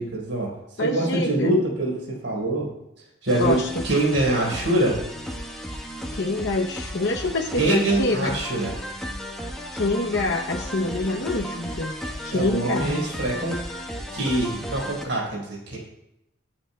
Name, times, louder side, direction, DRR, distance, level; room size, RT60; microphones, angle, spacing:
voice 1, 0.0-2.7 3.2-3.6 3.8-5.0 7.6-8.7 12.3-13.6 14.1-15.8, right 1 dB, 75° right, -2 dB, 4.2 m, -24 dB
voice 2, 0.8-1.6 3.4-3.7 6.1-8.4 9.7-11.9 12.2-13.1, left 2 dB, 65° left, 1 dB, 0.8 m, -26 dB
sound 1, 3.3-15.1, equal, ahead, 1.1 m, -34 dB
23.0 x 8.9 x 2.2 m, 0.87 s
head